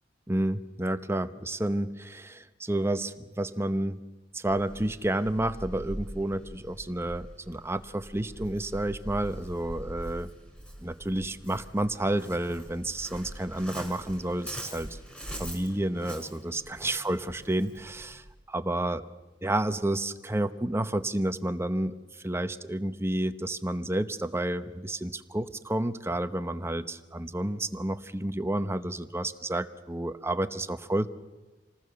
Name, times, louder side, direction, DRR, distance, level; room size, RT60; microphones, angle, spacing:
voice 1, 0.3-4.0 4.3-10.3 10.8-15.0 15.4-19.0 19.4-22.0 22.2-31.1, right 1 dB, 15° right, 11 dB, 0.8 m, -30 dB
Waves surf, 4.4-18.3, equal, 5° left, 5.9 m, -43 dB
27.5 x 19.5 x 6.9 m, 1.2 s
head